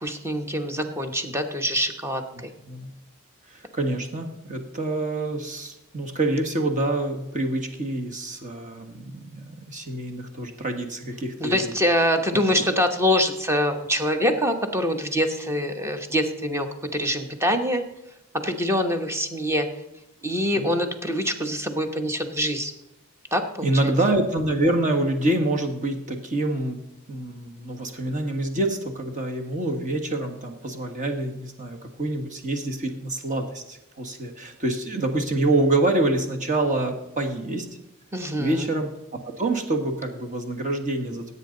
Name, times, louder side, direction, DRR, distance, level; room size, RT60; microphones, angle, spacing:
voice 1, 0.0-2.5 11.4-17.8 18.3-19.7 20.2-22.7 23.3-23.9 38.1-38.7, equal, 10° right, 6 dB, 1.1 m, -25 dB
voice 2, 2.3-2.9 3.5-11.7 20.6-20.7 23.6-26.8 27.1-37.7 38.4-38.9 39.4-41.3, right 2 dB, 35° right, 3 dB, 1.6 m, -26 dB
16.0 x 8.4 x 3.9 m, 0.91 s
head